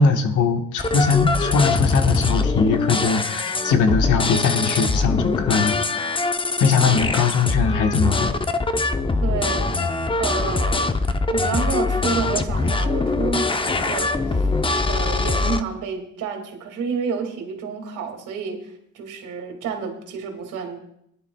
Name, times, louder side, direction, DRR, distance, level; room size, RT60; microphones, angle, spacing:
voice 1, 0.0-6.1 6.6-8.3, left 5 dB, 80° left, 5 dB, 1.3 m, -20 dB
sound 1, 0.8-15.6, left 3 dB, 15° left, 0.6 m, -23 dB
voice 2, 9.2-9.8 10.2-11.0 11.3-14.5 14.9-20.8, right 6 dB, 90° right, 3 dB, 2.2 m, -29 dB
19.5 x 11.0 x 2.3 m, 0.74 s
cardioid pair, 90°, 30 cm